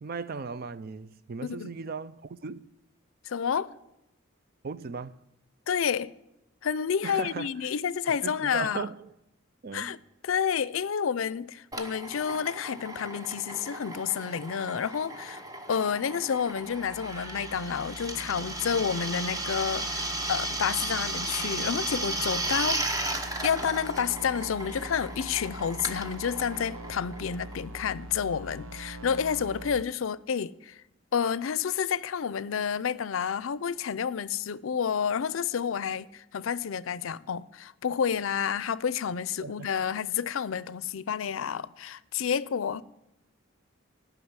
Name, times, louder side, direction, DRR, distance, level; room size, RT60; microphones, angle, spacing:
voice 1, 0.0-2.7 4.6-5.2 7.0-7.5 8.1-9.1 9.6-10.0 39.4-39.7, right 5 dB, 45° right, 0.4 m, -37 dB
voice 2, 1.4-1.7 3.3-3.7 5.7-6.1 6.6-8.9 9.7-10.0 10.2-15.4 15.7-23.0 23.4-30.8 31.1-42.8, left 7 dB, 80° left, 0.5 m, -30 dB
Drill, 11.7-28.0, right 2 dB, 15° right, 0.9 m, -35 dB
sound 1, 16.4-29.8, right 1 dB, 85° right, 0.8 m, -43 dB
15.0 x 5.9 x 9.6 m
head